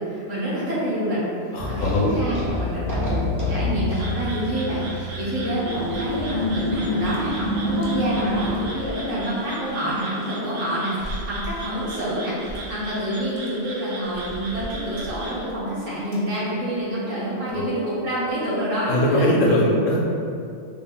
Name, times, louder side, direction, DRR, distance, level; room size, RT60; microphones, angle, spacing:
voice 1, 0.0-3.2 3.5-19.3, equal, 75° right, -8 dB, 1.4 m, -27 dB
voice 2, 1.5-2.1 17.5-17.6 18.9-20.0, left 1 dB, 75° left, -3 dB, 1.0 m, -20 dB
sound 1, 1.6-8.7, left 1 dB, 25° right, 0.4 m, -27 dB
sound 2, 3.9-15.4, right 2 dB, 55° right, 0.7 m, -38 dB
sound 3, 7.1-7.4 7.8-7.9 8.2-9.7 10.1-10.2 10.9-12.9 13.2-13.5 14.0-15.8 16.1-16.3 16.6-16.8 17.1-17.2 17.5-17.7 18.1-18.4, right 1 dB, 50° left, 0.6 m, -39 dB
3.4 x 2.1 x 3.7 m, 2.4 s
omnidirectional pair, 1.3 m